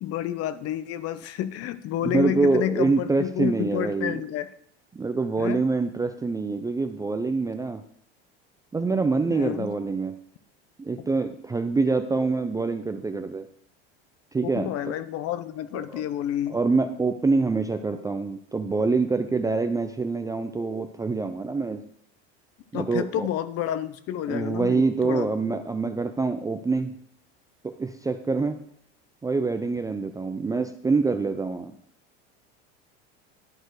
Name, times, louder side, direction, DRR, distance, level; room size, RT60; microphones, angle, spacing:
voice 1, 0.0-4.5 5.4-5.6 9.3-9.7 14.4-16.6 22.7-25.3, left 11 dB, 45° left, 13 dB, 0.7 m, -30 dB
voice 2, 2.0-4.2 4.9-7.8 8.7-10.2 10.8-13.5 14.3-14.9 15.7-16.0 16.5-21.8 22.7-23.3 24.3-26.9 27.6-28.6 29.2-31.8, right 3 dB, 10° right, 8 dB, 0.4 m, -25 dB
11.5 x 4.4 x 4.7 m, 0.67 s
supercardioid pair, 100°, 33 cm